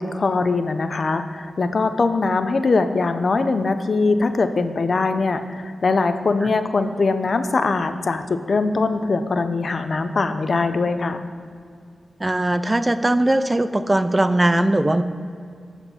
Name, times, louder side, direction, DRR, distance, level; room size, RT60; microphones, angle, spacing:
voice 1, 0.0-11.3, left 3 dB, 55° left, 9 dB, 0.6 m, -22 dB
voice 2, 12.2-15.0, right 1 dB, 20° right, 11 dB, 0.4 m, -19 dB
13.0 x 4.3 x 7.1 m, 2.3 s
cardioid pair, 75°, 0 cm